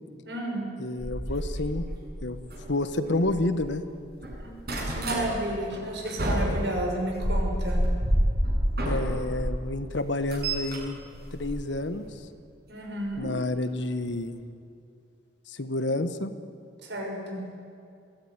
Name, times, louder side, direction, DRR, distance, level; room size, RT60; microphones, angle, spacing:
voice 1, 0.2-0.7 4.4-4.5 4.9-7.8 12.7-13.3 16.8-17.4, right 1 dB, 80° right, 1 dB, 6.1 m, -32 dB
voice 2, 0.8-1.8 2.2-2.4 2.7-3.8 8.8-11.0 11.3-12.0 13.2-14.4 15.5-16.3, left 2 dB, 85° left, 10 dB, 1.4 m, -29 dB
sound 1, 1.0-3.8 4.1-5.3 5.7-9.5 9.9-12.1 13.1-13.3 13.8-13.9 14.1-14.2, equal, 60° right, 7.1 m, -29 dB
21.5 x 17.5 x 9.8 m, 2.4 s
head